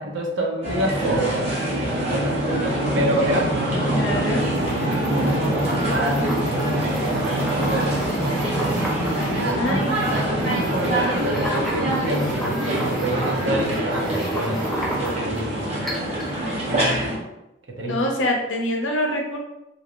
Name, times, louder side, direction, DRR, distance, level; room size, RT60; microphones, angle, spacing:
voice 1, 0.0-2.4 2.9-4.4 4.8-8.9 9.3-14.6 15.0-15.8 16.7-17.0 17.8-18.0, right 1 dB, 75° right, -1 dB, 0.7 m, -28 dB
sound 1, 0.6-17.2, right 1 dB, 35° right, 0.9 m, -24 dB
voice 2, 3.9-4.5 9.6-10.2 17.9-19.4, left 1 dB, 80° left, 1 dB, 0.6 m, -25 dB
sound 2, 4.4-15.4 15.9-16.3, right 1 dB, ahead, 0.5 m, -34 dB
2.9 x 2.7 x 2.5 m, 0.93 s
head